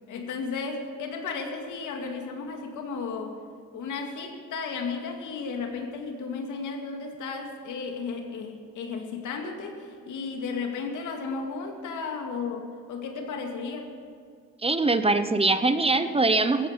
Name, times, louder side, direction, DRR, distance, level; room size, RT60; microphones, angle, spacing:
voice 1, 0.1-3.4 3.7-13.9, left 4 dB, 80° left, 3 dB, 2.4 m, -34 dB
voice 2, 14.6-16.7, right 3 dB, 20° right, 10 dB, 0.9 m, -22 dB
15.5 x 15.0 x 5.3 m, 2.2 s
cardioid pair, 90°, 30 cm